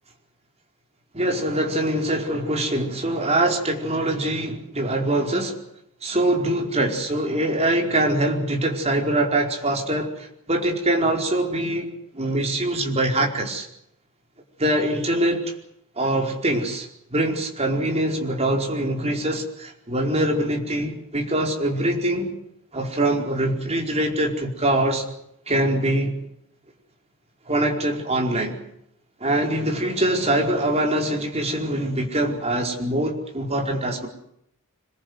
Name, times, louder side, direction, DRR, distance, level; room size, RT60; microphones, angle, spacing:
voice 1, 1.1-5.5 6.0-13.7 14.6-15.5 16.0-22.3 22.7-25.0 25.5-26.1 27.5-28.6 29.2-34.1, right 1 dB, 30° right, 2 dB, 4.8 m, -23 dB
26.5 x 22.0 x 8.2 m, 0.76 s
head